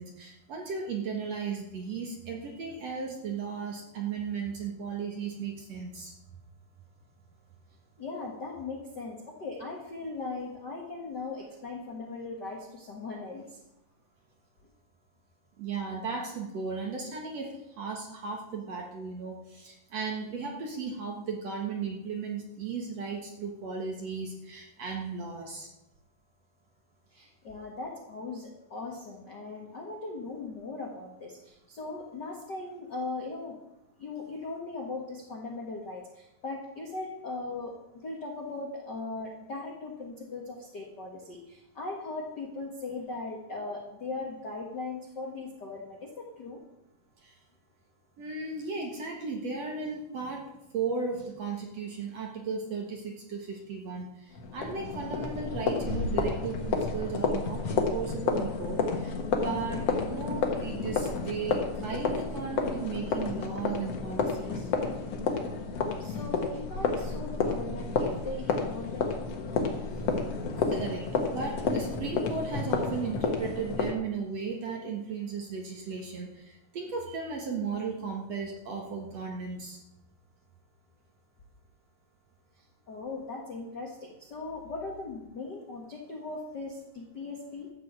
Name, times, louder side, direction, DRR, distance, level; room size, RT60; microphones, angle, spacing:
voice 1, 0.0-6.1 15.6-25.7 47.2-47.3 48.2-50.4 50.7-64.7 70.6-79.8, right 5 dB, 55° right, 1 dB, 2.0 m, -36 dB
voice 2, 8.0-13.6 27.1-33.5 34.0-37.7 38.0-46.6 66.0-69.1 82.6-87.7, left 3 dB, 75° left, 0 dB, 0.9 m, -39 dB
sound 1, 54.3-73.9, left 4 dB, 55° left, 1.8 m, -31 dB
13.5 x 6.3 x 8.0 m, 0.93 s
omnidirectional pair, 4.6 m